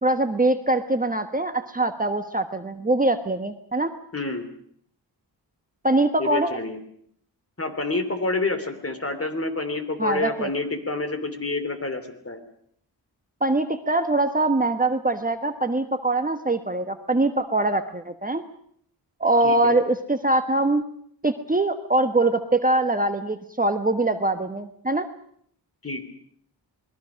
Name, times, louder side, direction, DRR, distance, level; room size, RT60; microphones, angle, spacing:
voice 1, 0.0-3.9 5.8-6.5 10.0-10.5 13.4-18.4 19.2-20.8 21.2-25.1, right 2 dB, 20° right, 8 dB, 1.2 m, -23 dB
voice 2, 4.1-4.5 6.2-6.8 7.6-12.4 19.4-19.8 25.8-26.0, left 2 dB, 30° left, 8 dB, 3.3 m, -28 dB
27.5 x 21.0 x 6.4 m, 0.65 s
wide cardioid pair, 95°, 43 cm